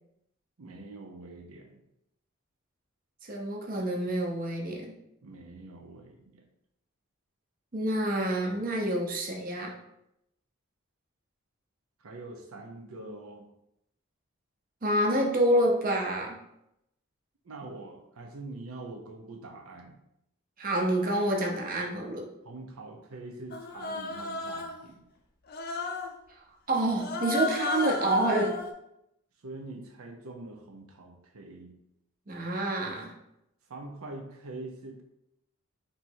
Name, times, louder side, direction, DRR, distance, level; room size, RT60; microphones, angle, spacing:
voice 1, 0.6-1.8 5.2-6.4 12.0-13.5 17.4-20.0 22.4-25.1 29.4-31.8 33.7-35.0, right 2 dB, 90° right, 2 dB, 0.6 m, -44 dB
voice 2, 3.3-4.9 7.7-9.7 14.8-16.4 20.6-22.3 26.7-28.6 32.3-33.1, right 1 dB, 40° right, 0 dB, 0.7 m, -27 dB
Human voice, 23.5-24.8 25.5-26.2 27.0-28.7, left 3 dB, 45° left, 0.5 m, -34 dB
3.2 x 2.9 x 4.5 m, 0.82 s
head